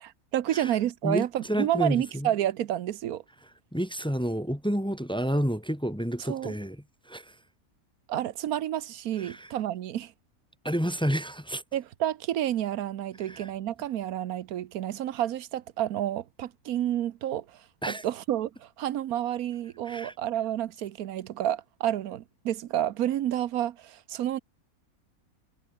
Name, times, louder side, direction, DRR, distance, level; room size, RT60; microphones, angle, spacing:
voice 1, 0.0-3.2 6.2-6.5 8.1-10.1 11.7-24.4, right 12 dB, 80° right, 1.2 m, -30 dB
voice 2, 1.0-2.3 3.7-6.8 7.1-7.3 9.2-9.5 10.6-11.6 13.2-13.5 17.8-18.0 19.8-20.1, equal, 5° left, 1.3 m, -30 dB
omnidirectional pair, 1.5 m